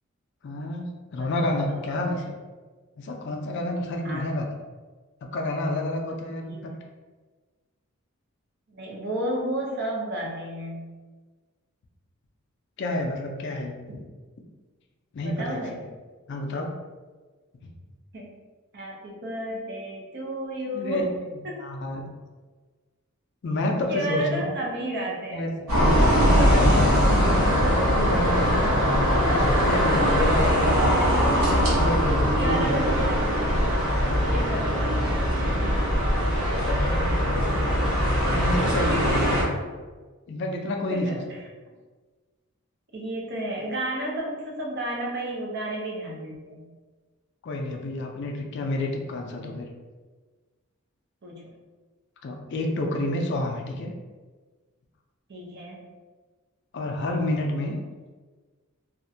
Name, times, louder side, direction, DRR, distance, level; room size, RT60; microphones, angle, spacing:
voice 1, 0.4-2.2 3.0-4.5 5.2-6.7 12.8-13.8 15.1-15.6 16.3-16.7 20.7-21.1 21.6-22.1 23.4-24.5 25.3-28.7 29.2-30.7 31.4-32.7 35.8-37.6 38.3-39.2 40.3-41.2 47.4-49.7 52.2-53.9 56.7-57.8, left 1 dB, 55° left, 2 dB, 0.3 m, -29 dB
voice 2, 1.2-1.8 2.1-2.4 4.0-4.3 8.7-10.9 13.9-14.0 15.2-15.8 18.1-18.4 18.7-21.1 21.4-21.6 23.9-25.4 25.7-26.3 30.2-31.3 32.3-33.4 34.2-35.3 35.6-36.1 38.7-39.5 40.9-41.4 42.9-46.7 51.2-51.4 55.3-55.9, right 1 dB, 50° right, -2 dB, 0.5 m, -32 dB
sound 1, 25.7-39.4, equal, 90° right, 0.9 m, -21 dB
2.4 x 2.1 x 2.6 m, 1.4 s
head